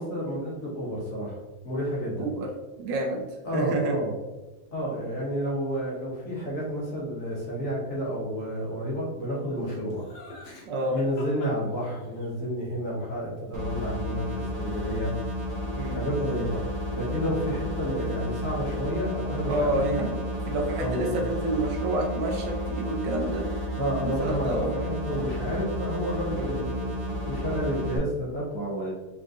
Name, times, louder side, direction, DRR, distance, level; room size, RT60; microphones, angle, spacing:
voice 1, 0.0-1.4 1.6-2.3 3.4-4.1 4.7-10.1 10.9-15.1 15.9-16.6 16.9-20.1 20.8-21.2 23.8-26.9 27.2-28.9, equal, 50° left, -5 dB, 1.5 m, -30 dB
voice 2, 2.2-2.5 2.8-3.3 3.5-4.0 10.7-11.0 15.7-16.0 19.5-23.5 24.0-24.7 26.3-26.5, right 2 dB, 75° right, 2 dB, 1.3 m, -29 dB
Laughter, 9.6-12.3 15.1-15.9 16.1-16.7, left 2 dB, 65° left, 1.4 m, -45 dB
sound 1, 13.5-28.0, left 1 dB, 40° right, 1.2 m, -32 dB
4.1 x 3.7 x 2.4 m, 1.2 s
omnidirectional pair, 2.0 m